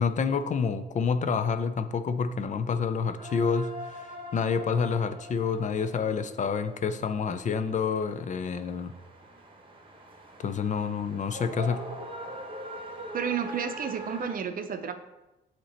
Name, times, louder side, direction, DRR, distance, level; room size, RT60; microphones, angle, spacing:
voice 1, 0.0-8.9 10.4-11.9, left 6 dB, 40° left, 11 dB, 0.4 m, -28 dB
sound 1, 3.2-14.3, equal, 25° right, 1.0 m, -43 dB
voice 2, 13.1-14.9, right 7 dB, 45° right, 7 dB, 0.6 m, -31 dB
8.3 x 2.9 x 4.3 m, 0.99 s
cardioid pair, 90°, 20 cm